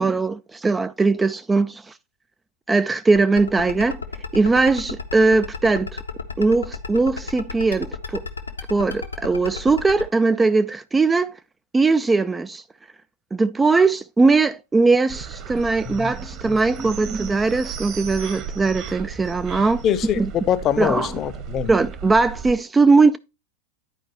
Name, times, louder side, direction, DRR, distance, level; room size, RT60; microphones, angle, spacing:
voice 1, 0.0-1.9 2.7-4.0 4.3-6.0 6.4-8.3 8.7-11.4 11.7-12.6 13.3-19.8 20.2-20.3 20.8-21.1 21.7-23.2, right 3 dB, 10° right, 0.3 m, -20 dB
sound 1, 3.2-10.0, left 5 dB, 80° left, 0.9 m, -31 dB
Seagulls by the sea, 15.1-22.6, right 7 dB, 40° right, 1.3 m, -35 dB
voice 2, 19.8-20.2 20.5-21.7, left 10 dB, 30° left, 0.7 m, -23 dB
9.9 x 4.7 x 4.2 m
figure-of-eight pair, 90°, 0 cm